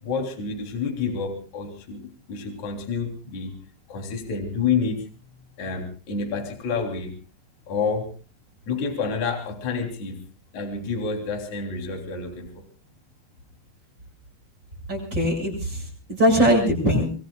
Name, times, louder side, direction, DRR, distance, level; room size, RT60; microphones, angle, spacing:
voice 1, 0.0-2.0 2.3-3.5 3.9-5.0 5.6-7.1 7.7-8.1 8.7-10.2 10.5-12.6, left 5 dB, 45° left, 2 dB, 4.3 m, -28 dB
voice 2, 14.9-17.1, equal, 25° right, 2 dB, 7.9 m, -21 dB
26.5 x 23.0 x 2.3 m, 0.37 s
omnidirectional pair, 4.9 m